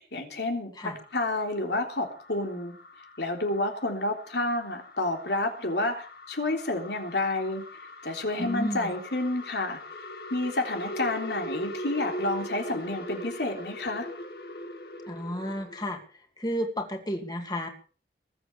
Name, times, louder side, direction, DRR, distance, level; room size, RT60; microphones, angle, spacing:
voice 1, 0.0-2.7 3.2-7.6 8.0-9.8 10.3-14.1, left 2 dB, 75° left, 4 dB, 3.5 m, -30 dB
sound 1, 0.8-15.9, left 1 dB, 60° left, 2.0 m, -41 dB
voice 2, 8.4-8.9 15.1-16.0 16.4-17.7, equal, 25° left, 4 dB, 2.6 m, -32 dB
21.5 x 8.0 x 6.9 m, 0.40 s
head